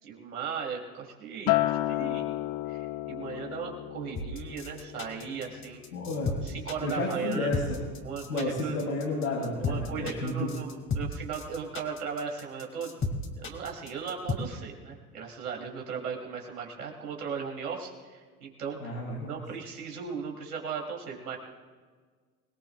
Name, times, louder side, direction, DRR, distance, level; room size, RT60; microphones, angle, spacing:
voice 1, 0.0-2.3 2.7-5.8 6.4-7.5 8.0-8.8 9.6-19.0 19.3-21.4, right 6 dB, 80° right, 0 dB, 3.6 m, -37 dB
Acoustic guitar, 1.5-5.9 6.3-6.7, left 16 dB, 45° left, 0.6 m, -32 dB
sound 1, 4.1-14.3, left 3 dB, 25° left, 2.5 m, -33 dB
voice 2, 5.9-6.3 6.8-7.8 8.3-10.5 18.8-19.3, left 2 dB, 85° left, -6 dB, 4.0 m, -31 dB
26.0 x 19.5 x 2.5 m, 1.5 s
hypercardioid pair, 75°, 45 cm